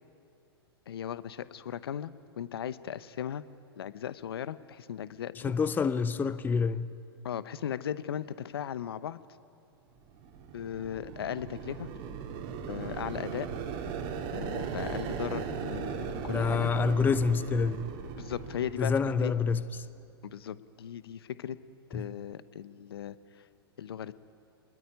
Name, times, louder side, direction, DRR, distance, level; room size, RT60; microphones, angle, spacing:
voice 1, 0.9-3.4 3.8-5.5 7.2-9.2 10.5-11.9 12.7-13.5 13.8-13.9 14.3-16.7 18.2-18.9 19.2-19.3 20.2-21.6 21.9-23.2 23.8-24.1, left 9 dB, 70° left, 0.9 m, -37 dB
voice 2, 5.4-7.0 16.3-17.9 18.8-19.7 21.9-22.1, left 5 dB, 15° left, 0.7 m, -27 dB
sound 1, 10.0-19.8, right 6 dB, 45° right, 3.3 m, -38 dB
28.0 x 21.0 x 9.7 m
hypercardioid pair, 110°, 13 cm